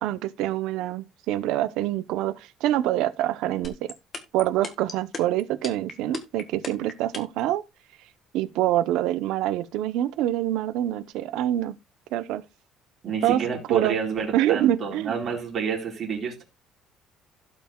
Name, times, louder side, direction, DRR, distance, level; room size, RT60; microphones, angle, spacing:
voice 1, 0.0-3.9 4.3-7.6 8.3-11.7 12.1-12.4 13.2-13.4 13.7-13.9 14.3-15.1, right 13 dB, 75° right, 0.8 m, -25 dB
sound 1, 3.6-7.4, left 4 dB, 25° left, 1.5 m, -34 dB
voice 2, 13.0-16.4, right 6 dB, 35° right, 4.3 m, -29 dB
16.5 x 5.8 x 2.3 m
cardioid pair, 170°, 0 cm